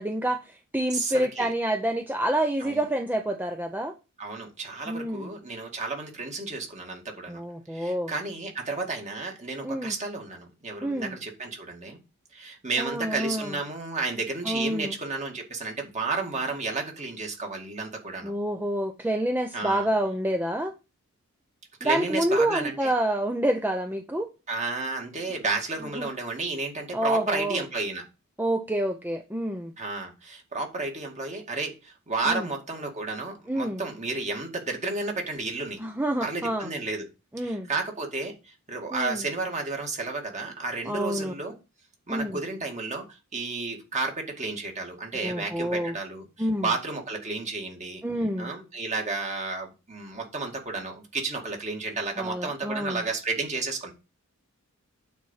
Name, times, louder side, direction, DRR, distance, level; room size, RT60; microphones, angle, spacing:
voice 1, 0.0-3.9 4.9-5.3 7.3-8.1 9.6-9.9 10.8-11.2 12.8-13.6 14.4-15.0 18.2-20.7 21.8-24.3 26.0-26.1 26.9-27.6 28.4-29.7 32.3-32.5 33.5-33.8 35.8-36.7 37.3-37.7 38.9-39.2 40.9-41.3 42.1-42.4 45.1-45.9 46.4-46.7 48.0-48.5 52.2-53.0, right 1 dB, 10° right, 5 dB, 0.6 m, -28 dB
voice 2, 0.9-1.5 2.6-2.8 4.2-7.4 7.7-12.0 12.3-18.3 19.5-19.9 21.8-22.9 24.5-28.0 29.8-35.8 36.2-37.1 37.4-41.6 42.1-43.1 43.3-48.0 48.4-53.9, right 3 dB, 30° right, 2 dB, 2.2 m, -32 dB
9.2 x 4.3 x 7.3 m, 0.29 s
head